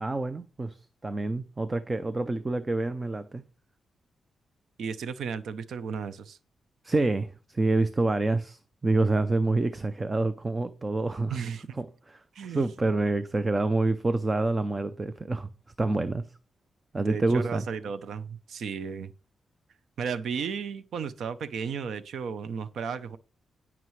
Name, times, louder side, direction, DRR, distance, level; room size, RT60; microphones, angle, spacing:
voice 1, 0.0-3.4 6.8-11.4 11.8-12.2 12.5-15.5 15.8-16.2 16.9-17.6, right 2 dB, 20° right, 0.5 m, -27 dB
voice 2, 4.8-6.4 11.3-11.6 12.3-12.7 17.0-19.1 20.0-23.2, right 6 dB, 65° right, 0.7 m, -34 dB
16.5 x 5.9 x 3.2 m
wide cardioid pair, 175°, 0 cm